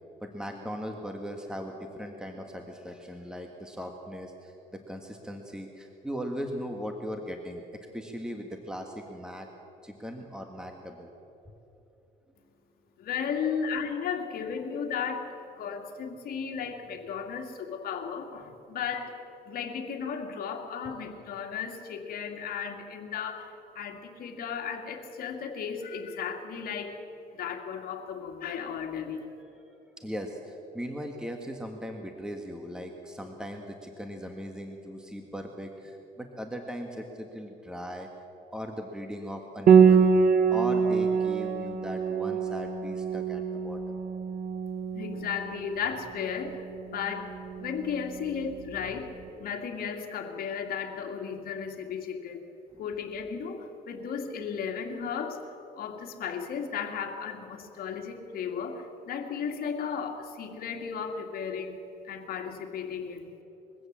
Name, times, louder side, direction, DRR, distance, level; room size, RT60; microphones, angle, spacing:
voice 1, 0.2-7.6 7.9-9.5 9.8-11.1 13.4-13.6 30.0-38.1 38.5-40.1 40.5-44.0, equal, 5° right, 3 dB, 1.6 m, -38 dB
voice 2, 13.0-15.3 15.6-19.2 19.5-27.0 27.3-29.3 44.9-47.3 47.6-49.1 49.4-52.4 52.8-55.4 55.7-61.8 62.0-63.3, left 7 dB, 60° left, 3 dB, 2.3 m, -35 dB
Piano, 39.7-49.0, right 6 dB, 50° right, 1.4 m, -25 dB
22.5 x 15.5 x 7.4 m, 3.0 s
cardioid pair, 110°, 17 cm